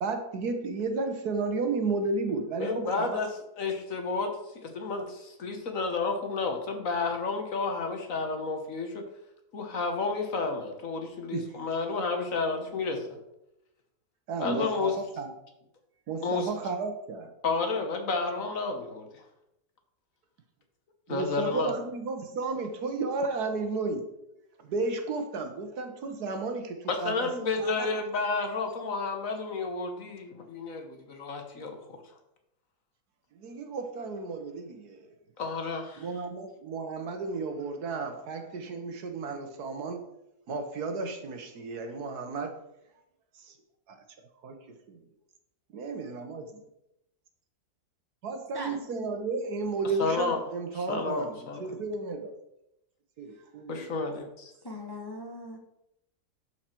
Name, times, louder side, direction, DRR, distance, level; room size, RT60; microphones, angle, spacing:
voice 1, 0.0-3.2 11.3-11.5 14.3-15.3 16.1-17.3 21.1-24.0 24.6-27.3 27.6-27.9 33.4-35.1 36.0-40.0 40.5-42.6 43.4-43.5 43.9-44.0 44.4-44.6 44.9-45.0 45.7-46.5 48.2-52.3 53.2-53.9, right 3 dB, 65° right, 6 dB, 1.6 m, -33 dB
voice 2, 2.6-3.3 3.6-4.3 4.6-9.0 9.5-13.0 14.4-15.0 16.2-16.5 17.4-19.1 21.1-21.7 26.9-31.8 35.4-36.1 50.0-50.4 50.7-51.6 53.7-54.5, left 4 dB, 55° left, 4 dB, 1.5 m, -31 dB
voice 3, 54.6-55.6, left 1 dB, 20° left, 2 dB, 0.8 m, -39 dB
11.5 x 4.9 x 4.5 m, 0.85 s
omnidirectional pair, 1.8 m